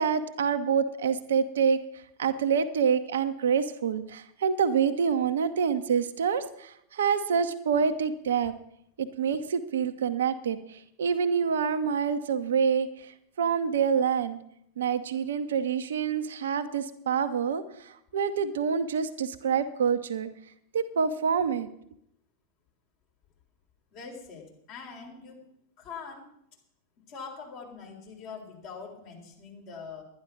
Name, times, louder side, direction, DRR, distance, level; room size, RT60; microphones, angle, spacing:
voice 1, 0.0-1.8 2.2-8.5 9.0-13.1 13.4-14.4 14.8-20.3 20.7-21.7, right 6 dB, 65° right, 9 dB, 0.8 m, -27 dB
voice 2, 23.9-25.4 25.8-26.2 27.1-30.0, left 5 dB, 40° left, 0 dB, 3.9 m, -43 dB
11.5 x 10.5 x 6.1 m, 0.74 s
figure-of-eight pair, 90°, 0 cm